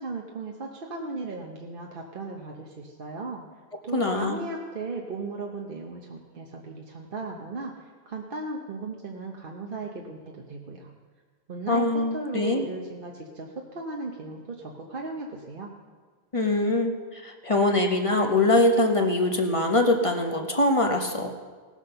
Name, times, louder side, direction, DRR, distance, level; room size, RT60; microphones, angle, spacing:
voice 1, 0.0-3.4 3.8-7.7 8.1-10.9 11.5-15.7, right 3 dB, 55° right, 0 dB, 1.1 m, -36 dB
voice 2, 3.9-4.4 11.7-12.6 16.3-21.3, left 2 dB, 30° left, 3 dB, 1.0 m, -23 dB
18.0 x 6.2 x 6.7 m, 1.5 s
omnidirectional pair, 1.1 m